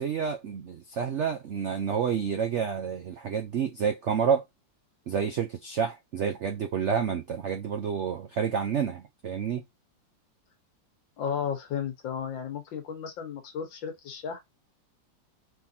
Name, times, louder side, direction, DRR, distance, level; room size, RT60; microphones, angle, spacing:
voice 1, 0.0-4.4 5.1-9.6, right 7 dB, 85° right, 0.6 m, -29 dB
voice 2, 11.2-14.4, left 7 dB, 80° left, 1.9 m, -34 dB
4.6 x 3.8 x 2.7 m
omnidirectional pair, 2.1 m